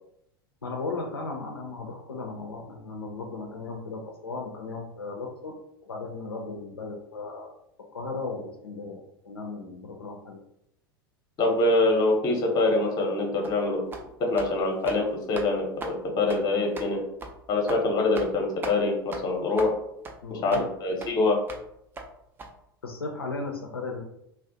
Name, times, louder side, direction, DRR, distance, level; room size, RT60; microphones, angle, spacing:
voice 1, 0.6-5.6 5.8-7.5 7.9-10.4 20.2-20.6 22.8-24.0, left 3 dB, 85° left, 1 dB, 0.4 m, -36 dB
voice 2, 11.4-13.8 14.2-17.0 17.5-19.7 20.3-21.4, left 2 dB, 35° left, 1 dB, 0.7 m, -24 dB
sound 1, 13.4-13.6 13.9-14.1 14.4-14.5 14.8-15.0 15.3-15.5 15.8-16.0 16.3-16.4 16.7-16.9 17.2-17.3 17.7-17.8 18.1-18.3 18.6-18.8 19.1-19.2 19.6-19.7 20.0-20.2 20.5-20.7 21.0-21.1 21.5-21.6 22.0-22.1 22.4-22.5, right 3 dB, 15° right, 0.3 m, -38 dB
2.3 x 2.0 x 2.7 m, 0.76 s
figure-of-eight pair, 85°, 12 cm